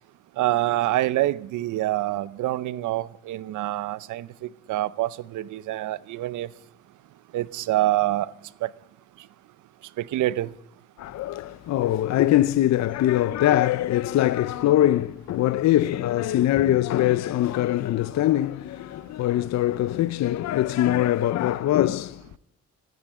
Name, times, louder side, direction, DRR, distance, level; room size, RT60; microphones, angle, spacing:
voice 1, 0.4-6.5 7.3-8.3 8.6-8.7 10.0-10.5, right 15 dB, 80° right, 0.7 m, -26 dB
voice 2, 11.0-22.4, left 13 dB, 60° left, 0.5 m, -22 dB
14.0 x 9.5 x 9.4 m
cardioid pair, 90°, 30 cm